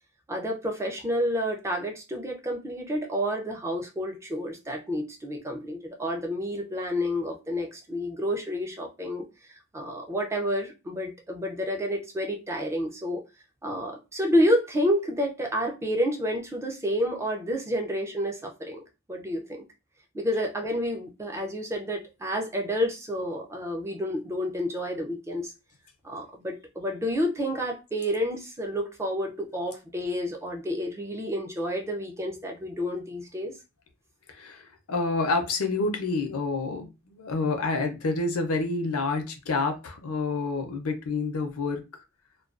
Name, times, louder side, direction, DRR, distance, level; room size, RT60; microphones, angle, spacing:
voice 1, 0.3-13.2 13.6-18.8 19.1-19.6 20.1-25.5 26.0-33.5, equal, 10° right, 2 dB, 0.4 m, -29 dB
voice 2, 34.3-41.8, left 3 dB, 70° left, 5 dB, 0.6 m, -28 dB
2.3 x 2.2 x 2.4 m, 0.26 s
head